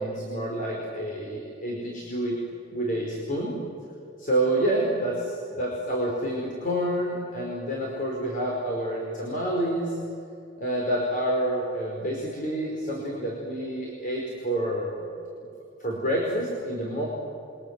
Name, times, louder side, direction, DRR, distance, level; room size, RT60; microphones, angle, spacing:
voice 1, 0.0-2.4 2.7-3.5 4.2-10.0 10.6-15.0 15.8-17.1, right 1 dB, 45° left, -2 dB, 5.2 m, -28 dB
28.5 x 25.5 x 7.7 m, 2.7 s
head